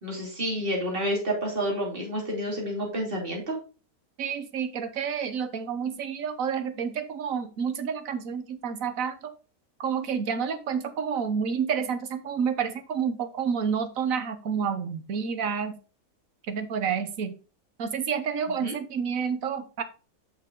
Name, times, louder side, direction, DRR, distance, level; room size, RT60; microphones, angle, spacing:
voice 1, 0.0-3.6 18.6-18.7, equal, 35° right, -2 dB, 3.0 m, -29 dB
voice 2, 4.2-9.3 9.8-15.8 16.5-17.4 17.8-19.8, right 7 dB, 65° right, 10 dB, 1.4 m, -29 dB
6.5 x 6.2 x 3.7 m, 0.34 s
omnidirectional pair, 1.5 m